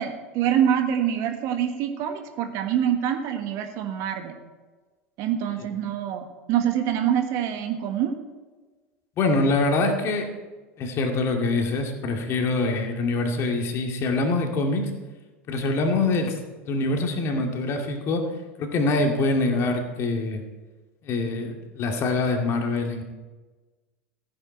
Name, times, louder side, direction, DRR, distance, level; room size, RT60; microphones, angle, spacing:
voice 1, 0.0-4.4 5.2-8.1, right 9 dB, 50° right, 6 dB, 1.4 m, -25 dB
voice 2, 9.2-10.3 10.8-14.9 15.5-16.4 16.6-18.2 18.6-20.4 21.0-23.0, left 3 dB, 40° left, 3 dB, 2.2 m, -24 dB
14.5 x 9.6 x 4.4 m, 1.3 s
figure-of-eight pair, 80°, 7 cm